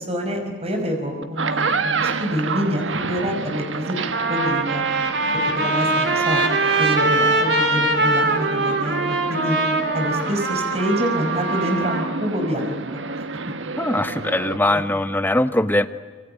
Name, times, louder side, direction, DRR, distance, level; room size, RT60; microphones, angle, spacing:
voice 1, 0.0-4.0 4.3-4.8 5.6-6.5 6.8-9.6 9.9-12.8 13.1-13.2 14.7-14.8, equal, 35° right, 3 dB, 5.3 m, -26 dB
sound 1, 1.2-14.6, right 4 dB, 90° right, 1.5 m, -29 dB
Trumpet, 3.4-3.5 4.1-12.1, right 2 dB, 65° right, 3.7 m, -22 dB
voice 2, 13.8-15.9, left 1 dB, 10° left, 10 dB, 1.1 m, -21 dB
26.5 x 25.0 x 9.1 m, 1.5 s
head